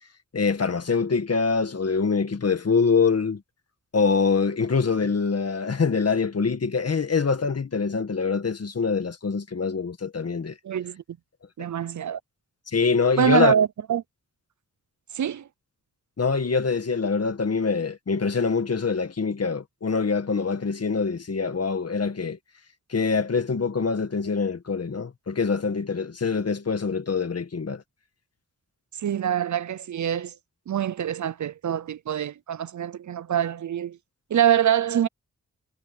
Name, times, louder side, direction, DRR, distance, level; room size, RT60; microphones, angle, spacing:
voice 1, 0.3-3.4 3.9-10.5 12.7-13.5 16.2-22.4 22.9-27.8, left 5 dB, 55° left, 1.9 m, -24 dB
voice 2, 10.6-11.0 11.6-12.2 13.2-14.0 15.1-15.5 29.0-30.3 30.7-34.0 34.3-35.1, right 9 dB, 70° right, 0.7 m, -24 dB
cardioid pair, 70°, 30 cm